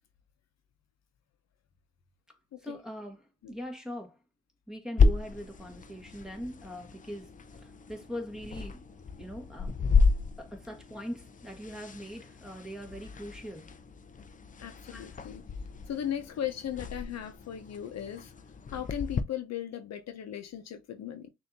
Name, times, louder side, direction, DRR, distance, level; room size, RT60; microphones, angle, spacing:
voice 1, 2.3-4.2 4.7-8.8 9.2-9.7 10.4-13.7 14.9-15.2, equal, ahead, 1.4 m, -42 dB
sound 1, 5.0-19.2, left 4 dB, 25° left, 0.5 m, -32 dB
voice 2, 14.6-15.4 15.9-18.3 18.7-21.3, left 10 dB, 60° left, 0.8 m, -37 dB
6.4 x 2.7 x 2.7 m
cardioid pair, 90°, 30 cm